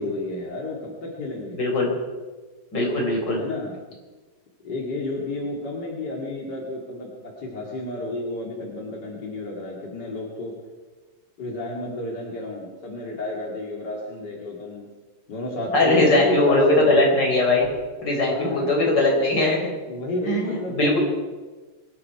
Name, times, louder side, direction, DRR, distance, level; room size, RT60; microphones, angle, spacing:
voice 1, 0.0-1.6 3.3-3.8 4.6-7.1 7.4-10.5 11.4-14.9 15.3-17.0 18.3-18.8 19.9-21.0, left 2 dB, 40° left, -2 dB, 1.6 m, -31 dB
voice 2, 1.5-1.9 2.7-3.4 15.7-17.7 18.0-19.7 20.2-21.0, left 2 dB, 20° left, -2 dB, 4.6 m, -20 dB
23.5 x 13.0 x 4.8 m, 1.3 s
omnidirectional pair, 5.8 m